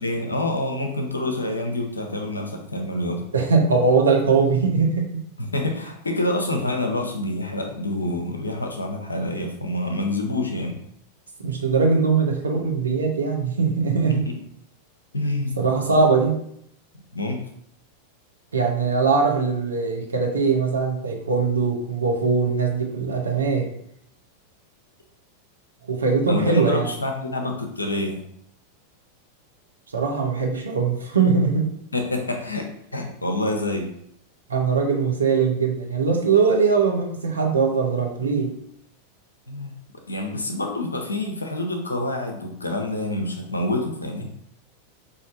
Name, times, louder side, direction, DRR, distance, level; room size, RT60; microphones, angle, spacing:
voice 1, 0.0-3.3 5.4-10.8 14.1-14.3 15.1-15.6 15.9-16.0 17.1-17.4 26.3-28.2 31.9-33.9 39.5-39.7 40.1-44.3, left 1 dB, 80° left, 3 dB, 0.6 m, -27 dB
voice 2, 3.3-5.2 11.4-14.2 15.6-16.4 18.5-23.7 25.9-26.9 29.9-31.7 34.5-38.5, right 4 dB, 75° right, 1 dB, 0.7 m, -21 dB
5.1 x 2.6 x 2.5 m, 0.70 s
figure-of-eight pair, 90°, 0 cm